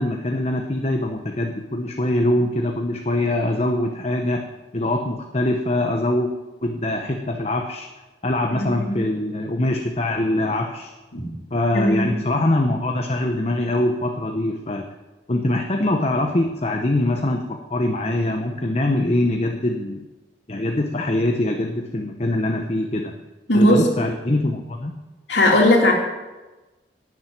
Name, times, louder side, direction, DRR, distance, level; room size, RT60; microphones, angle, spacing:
voice 1, 0.0-4.4 4.7-6.3 6.6-7.9 8.2-10.9 11.5-14.8 15.3-20.0 20.5-23.1 23.5-24.9, left 1 dB, 35° left, 3 dB, 0.9 m, -23 dB
voice 2, 8.5-9.0 11.1-11.3 11.7-12.1 23.5-23.9 25.3-25.9, left 1 dB, 80° left, 1 dB, 2.8 m, -17 dB
12.0 x 7.4 x 9.3 m, 1.1 s
head